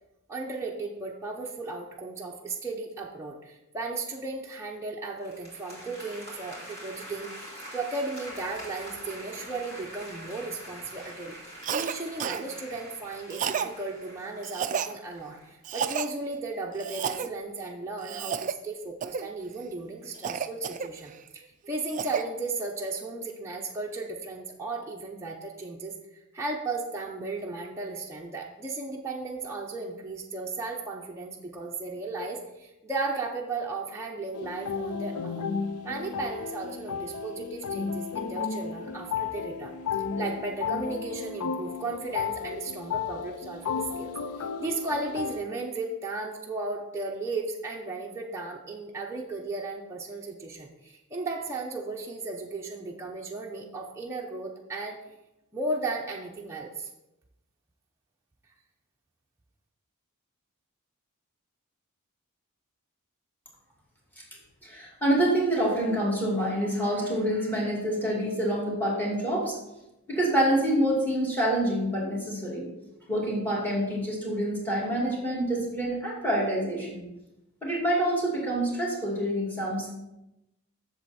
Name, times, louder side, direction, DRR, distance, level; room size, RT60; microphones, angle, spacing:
voice 1, 0.3-25.9 26.3-35.5 35.8-39.7 40.2-44.1 44.4-55.0 55.5-56.9, right 3 dB, 15° right, -2 dB, 0.7 m, -35 dB
sound 1, 5.2-15.5, equal, 30° left, 3.0 m, -45 dB
Cough, 11.6-11.9 12.2-12.4 13.3-13.7 14.4-14.9 15.6-16.1 16.8-17.3 18.0-18.5 19.0-19.3 20.2-21.2 21.6-22.2, right 7 dB, 35° right, 0.3 m, -31 dB
sound 2, 34.3-45.4, left 6 dB, 80° left, 0.5 m, -33 dB
voice 2, 64.6-69.6 70.1-72.7 73.1-77.0 77.6-79.9, right 1 dB, 10° left, -3 dB, 2.4 m, -27 dB
8.0 x 6.9 x 4.2 m, 0.93 s
head